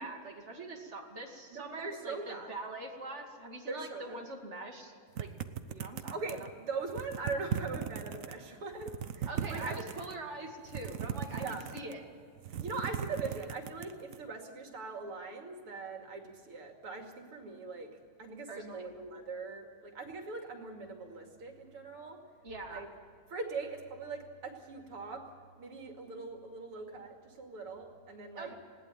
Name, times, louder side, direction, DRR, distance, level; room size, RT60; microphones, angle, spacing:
voice 1, 0.0-4.9 5.2-5.3 5.7-6.1 9.3-12.0 18.5-18.9 22.4-22.9 28.3-28.5, right 2 dB, 30° right, 2 dB, 2.6 m, -43 dB
voice 2, 1.5-2.5 3.7-4.2 6.1-9.8 11.3-11.7 12.5-17.9 18.2-22.2 22.7-22.9 23.3-25.2 25.6-28.5, right 3 dB, 80° right, 3 dB, 3.3 m, -41 dB
sound 1, 5.2-6.5 6.9-8.3 8.7-10.2 10.7-12.0 12.4-14.2, right 8 dB, 55° right, 0.9 m, -38 dB
20.0 x 17.5 x 9.2 m, 2.2 s
omnidirectional pair, 2.4 m